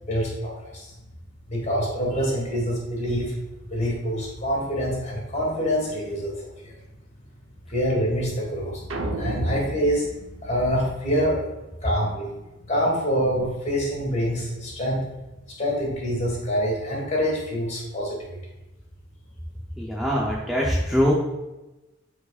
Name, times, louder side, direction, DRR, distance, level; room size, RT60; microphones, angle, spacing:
voice 1, 0.0-0.9 1.5-3.3 3.7-6.7 7.7-8.9 9.2-10.1 10.4-11.4 11.8-12.3 12.7-15.0 15.6-18.4, equal, 35° left, -3 dB, 2.8 m, -26 dB
sound 1, 8.9-11.4, right 2 dB, 75° right, 1.0 m, -34 dB
voice 2, 19.8-21.1, equal, ahead, -5 dB, 0.8 m, -22 dB
13.0 x 4.8 x 2.5 m, 1.0 s
head